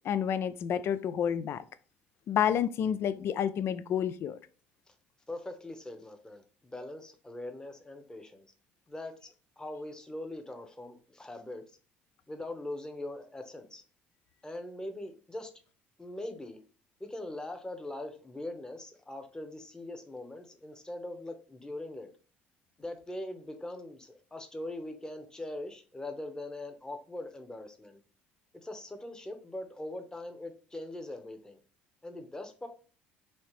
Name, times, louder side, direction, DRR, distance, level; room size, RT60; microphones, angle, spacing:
voice 1, 0.0-1.6 2.3-4.4, left 9 dB, 55° left, 14 dB, 0.4 m, -29 dB
voice 2, 5.3-8.5 8.9-11.6 12.3-13.8 14.4-15.5 16.0-16.6 17.0-22.1 22.8-28.0 28.6-31.6 32.0-32.7, left 1 dB, 15° left, 6 dB, 0.9 m, -41 dB
4.3 x 2.8 x 3.1 m, 0.39 s
hypercardioid pair, 70°, 5 cm